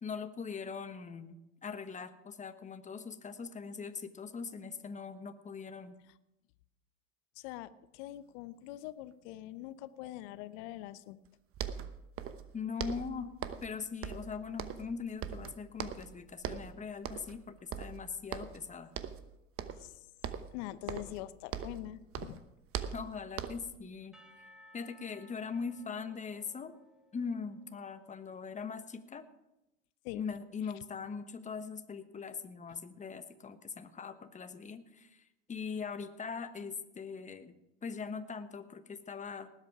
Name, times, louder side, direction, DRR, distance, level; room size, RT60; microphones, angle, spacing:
voice 1, 0.0-6.0 12.5-13.3 13.6-18.9 22.9-24.2 24.7-26.7 27.1-29.2 30.1-35.2 35.5-37.5 37.8-39.5, left 5 dB, 20° left, 10 dB, 1.2 m, -41 dB
voice 2, 7.4-11.2 19.8-20.1 20.5-22.4 30.0-30.2, left 15 dB, 60° left, 15 dB, 0.8 m, -44 dB
sound 1, 11.3-11.4 11.5-12.5 12.8-13.7 14.0-15.0 15.2-16.1 16.4-16.7 17.0-17.4 17.7-18.6 18.9-19.3 19.6-19.9 20.2-21.9 22.1-23.8, right 8 dB, 35° right, 1.0 m, -40 dB
Percussion / Church bell, 24.1-28.1, left 1 dB, ahead, 2.1 m, -61 dB
19.0 x 8.3 x 4.8 m, 0.91 s
hypercardioid pair, 90°, 38 cm